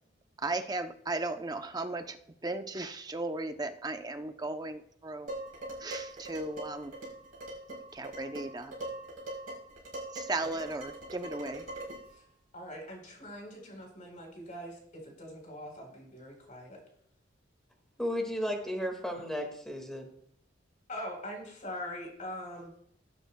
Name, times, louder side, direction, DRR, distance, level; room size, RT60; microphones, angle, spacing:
voice 1, 0.4-2.2 2.4-5.3 5.8-7.0 7.9-8.7 10.1-11.7, right 2 dB, 20° right, 8 dB, 0.6 m, -36 dB
Dishes pots and pans, 5.3-12.1, right 1 dB, 45° right, 5.0 m, -42 dB
voice 2, 12.5-16.8 19.2-19.3 20.9-22.7, left 1 dB, 40° left, 0 dB, 3.9 m, -43 dB
voice 3, 18.0-20.1, equal, ahead, 2 dB, 1.8 m, -34 dB
19.5 x 9.2 x 2.2 m, 0.71 s
head